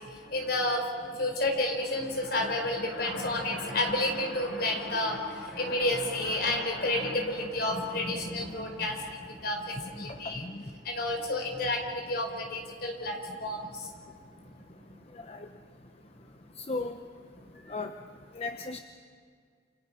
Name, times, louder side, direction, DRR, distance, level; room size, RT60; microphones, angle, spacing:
voice 1, 0.2-10.4 10.8-13.9, left 1 dB, 55° left, 3 dB, 4.6 m, -30 dB
voice 2, 16.6-16.9 17.7-17.9 18.3-18.8, left 3 dB, 30° left, 6 dB, 0.9 m, -35 dB
29.0 x 28.5 x 5.9 m, 2.1 s
head